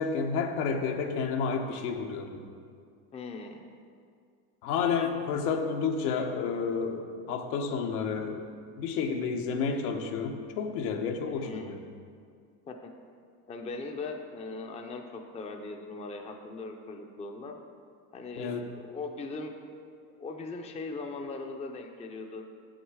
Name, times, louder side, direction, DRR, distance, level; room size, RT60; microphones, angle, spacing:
voice 1, 0.0-2.4 4.6-8.4 8.8-11.8 18.4-18.6, left 5 dB, 75° left, 4 dB, 1.0 m, -30 dB
voice 2, 3.1-3.6 11.3-11.8 12.7-12.9 13.5-17.6 18.1-19.5 20.2-22.4, left 3 dB, 15° left, 3 dB, 0.5 m, -39 dB
7.1 x 6.4 x 4.7 m, 2.2 s
supercardioid pair, 110°, 45 cm